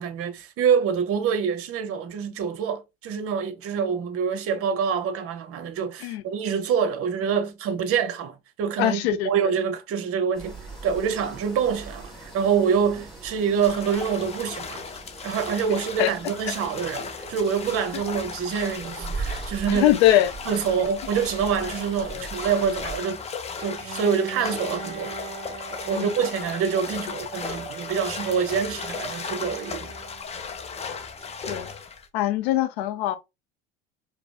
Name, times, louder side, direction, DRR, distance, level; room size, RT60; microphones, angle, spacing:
voice 1, 0.0-10.6 10.8-14.8 15.2-19.9 20.5-23.2 23.6-25.1 25.9-29.9, right 7 dB, 45° right, 0.8 m, -26 dB
voice 2, 8.8-9.3 16.0-16.1 19.7-20.3 22.1-22.3 25.9-26.1 31.5-31.7 32.1-33.2, left 13 dB, 70° left, 0.6 m, -22 dB
sound 1, 10.3-23.0, right 3 dB, ahead, 1.8 m, -40 dB
sound 2, 13.6-32.1, left 5 dB, 20° left, 0.5 m, -36 dB
Bowed string instrument, 23.8-30.5, right 6 dB, 20° right, 1.7 m, -41 dB
4.7 x 2.0 x 2.3 m
hypercardioid pair, 80°, 32 cm